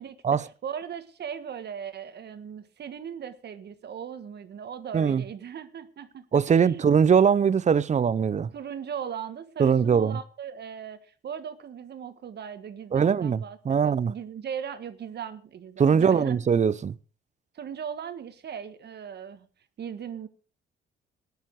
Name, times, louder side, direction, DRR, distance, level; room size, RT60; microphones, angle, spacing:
voice 1, 0.0-6.8 8.5-16.4 17.5-19.5 19.8-20.3, right 8 dB, 55° right, 1.5 m, -38 dB
voice 2, 6.3-8.5 9.6-10.2 12.9-14.1 15.8-16.9, right 7 dB, 35° right, 0.6 m, -21 dB
14.0 x 10.5 x 4.7 m
cardioid pair, 90°, 20 cm